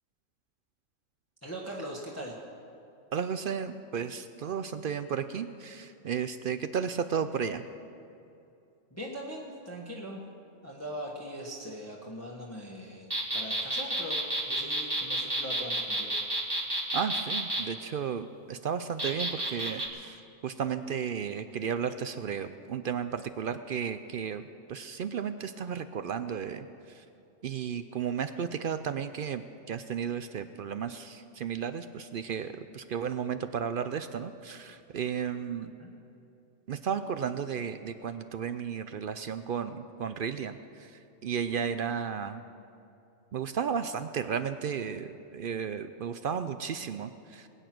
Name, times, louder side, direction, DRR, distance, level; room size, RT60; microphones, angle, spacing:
voice 1, 1.4-2.3 8.9-10.2 10.6-14.2 14.5-16.1 35.8-35.9, equal, 10° left, -2 dB, 1.4 m, -40 dB
voice 2, 3.1-7.7 16.9-20.2 20.4-24.4 24.7-26.6 27.4-35.7 36.7-40.9 41.2-42.4 43.3-47.5, right 7 dB, 65° right, 11 dB, 0.5 m, -33 dB
sound 1, 13.1-17.6 19.0-19.9, right 1 dB, 20° right, 1.5 m, -30 dB
21.0 x 9.2 x 6.1 m, 2.7 s
omnidirectional pair, 1.4 m